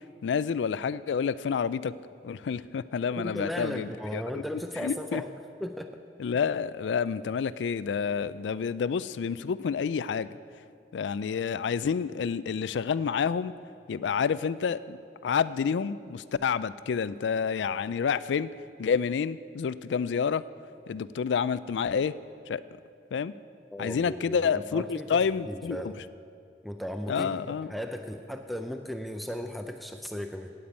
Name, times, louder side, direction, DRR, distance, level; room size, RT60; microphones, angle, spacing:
voice 1, 0.2-1.9 2.2-4.2 4.8-5.2 6.2-10.3 10.9-13.5 13.9-15.0 15.2-18.5 18.8-20.4 20.9-22.2 22.5-22.6 23.1-23.3 23.8-25.8 27.1-27.7, left 6 dB, 90° left, 17 dB, 0.4 m, -29 dB
voice 2, 3.2-5.3 5.6-5.9 23.7-25.2 25.5-26.0 26.6-30.5, equal, ahead, 5 dB, 0.4 m, -36 dB
9.4 x 8.7 x 8.7 m, 2.4 s
head